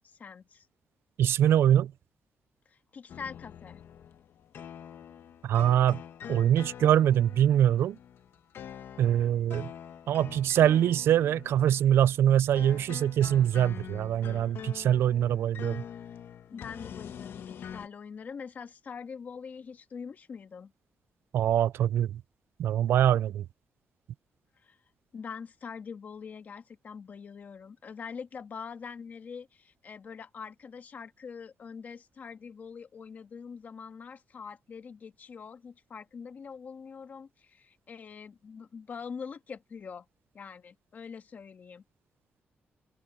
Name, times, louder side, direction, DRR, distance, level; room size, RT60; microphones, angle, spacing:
voice 1, 0.2-0.7 2.7-3.8 16.5-20.7 24.6-24.8 25.1-40.1 40.3-41.8, left 6 dB, 45° left, 1.9 m, -44 dB
voice 2, 1.2-1.9 5.4-6.0 6.3-8.0 9.0-9.7 10.1-15.8 21.3-22.2 22.6-23.4, right 10 dB, 80° right, 0.4 m, -24 dB
sound 1, 3.1-17.9, left 9 dB, 70° left, 1.5 m, -45 dB
open air
wide cardioid pair, 145°, 4 cm